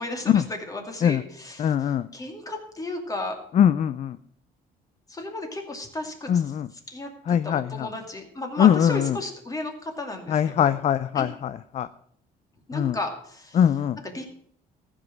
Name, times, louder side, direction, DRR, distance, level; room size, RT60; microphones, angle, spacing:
voice 1, 0.0-3.4 5.1-10.7 11.1-11.3 12.7-13.6 14.0-14.3, left 2 dB, 20° left, 4 dB, 2.6 m, -34 dB
voice 2, 1.6-2.1 3.5-4.2 6.3-6.7 7.3-7.9 8.6-9.2 10.3-11.9 12.7-13.0 13.5-14.0, left 9 dB, 40° left, 15 dB, 0.5 m, -22 dB
14.5 x 6.2 x 7.3 m, 0.65 s
cardioid pair, 110°, 17 cm